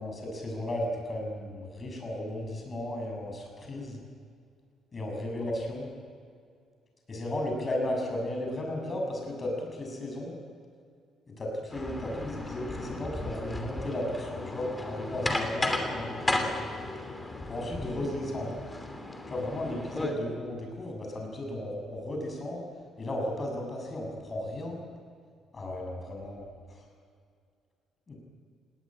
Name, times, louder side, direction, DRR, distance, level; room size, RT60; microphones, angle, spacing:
voice 1, 0.0-4.0 4.9-5.9 7.1-10.3 11.3-16.5 17.5-18.6 19.3-22.6 23.0-24.8 25.5-26.8 28.1-28.2, left 1 dB, 30° left, 1 dB, 6.5 m, -35 dB
sound 1, 11.7-20.1, left 2 dB, 10° left, 2.8 m, -34 dB
20.0 x 18.0 x 8.8 m, 2.3 s
cardioid pair, 130°, 0 cm